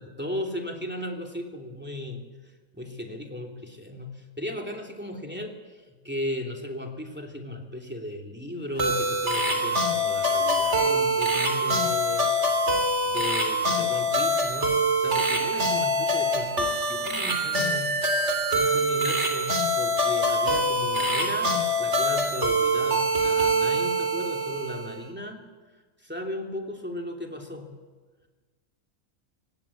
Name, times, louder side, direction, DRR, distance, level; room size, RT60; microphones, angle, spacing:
voice 1, 0.0-2.2 2.7-12.3 13.0-18.0 18.5-21.5 21.8-25.4 26.0-27.7, left 1 dB, 5° right, 2 dB, 3.0 m, -36 dB
sound 1, 8.8-25.0, equal, 50° right, 3.6 m, -24 dB
24.5 x 18.0 x 8.5 m, 1.4 s
omnidirectional pair, 1.5 m